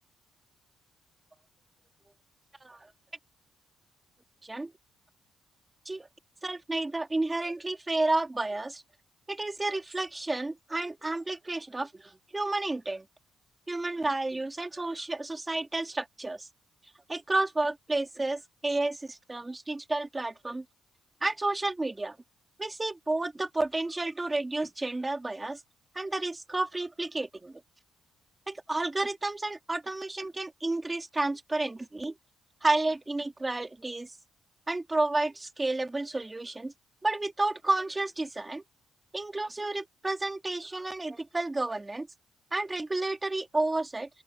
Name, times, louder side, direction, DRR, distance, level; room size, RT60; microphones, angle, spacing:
voice 1, 6.4-8.8 9.3-13.1 13.7-16.5 17.1-20.6 21.2-22.2 22.6-25.6 25.9-27.6 28.5-32.1 32.6-34.1 34.7-36.7 37.0-38.6 39.1-42.1 42.5-44.1, right 2 dB, 15° right, 2.4 m, -31 dB
open air
cardioid pair, 90°, 0 cm